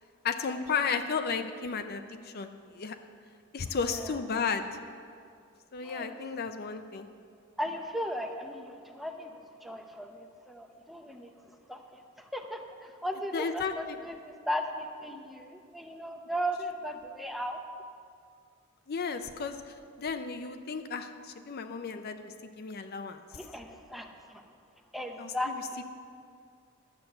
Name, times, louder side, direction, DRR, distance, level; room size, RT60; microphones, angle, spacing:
voice 1, 0.2-3.0 3.5-4.7 5.7-7.1 13.3-13.7 18.9-23.2 25.2-25.8, left 5 dB, 50° left, 8 dB, 0.5 m, -34 dB
voice 2, 5.8-6.2 7.6-11.3 11.7-17.6 23.3-24.5 24.9-25.8, equal, ahead, 4 dB, 0.7 m, -37 dB
11.0 x 6.8 x 7.8 m, 2.3 s
head